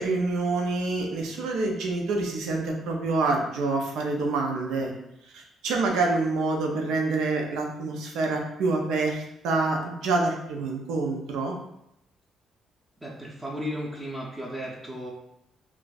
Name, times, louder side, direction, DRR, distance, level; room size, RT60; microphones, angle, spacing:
voice 1, 0.0-4.9 5.3-11.6, right 3 dB, 90° right, 1 dB, 0.6 m, -27 dB
voice 2, 13.0-15.1, equal, 15° right, -4 dB, 0.6 m, -35 dB
2.5 x 2.3 x 3.9 m, 0.81 s
cardioid pair, 90°, 0 cm